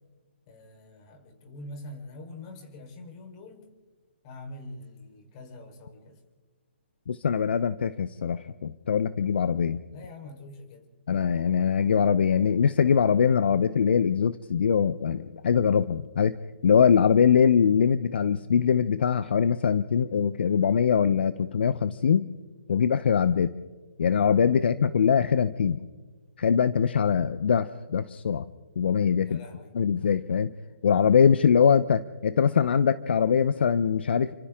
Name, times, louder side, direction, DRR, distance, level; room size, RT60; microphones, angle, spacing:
voice 1, 0.5-3.6 4.2-6.2 9.9-10.9 29.2-29.8, left 2 dB, 30° left, 4 dB, 4.3 m, -44 dB
voice 2, 7.1-9.8 11.1-16.3 16.6-22.3 22.7-23.5 24.0-25.8 26.4-28.4 28.8-29.4 29.7-30.5 30.8-34.3, left 7 dB, 60° left, 14 dB, 0.8 m, -22 dB
30.0 x 25.0 x 3.7 m, 1.3 s
hypercardioid pair, 145°, 6 cm